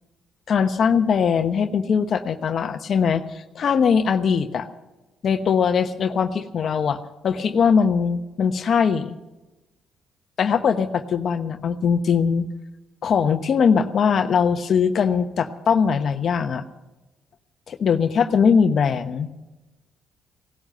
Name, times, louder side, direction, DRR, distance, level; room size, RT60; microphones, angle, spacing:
voice 1, 0.5-4.7 5.2-7.0 7.2-9.1 10.4-12.4 13.0-16.6 17.7-19.3, left 6 dB, 55° left, 8 dB, 1.0 m, -21 dB
17.5 x 12.0 x 6.6 m, 1.1 s
cardioid pair, 90°, 0 cm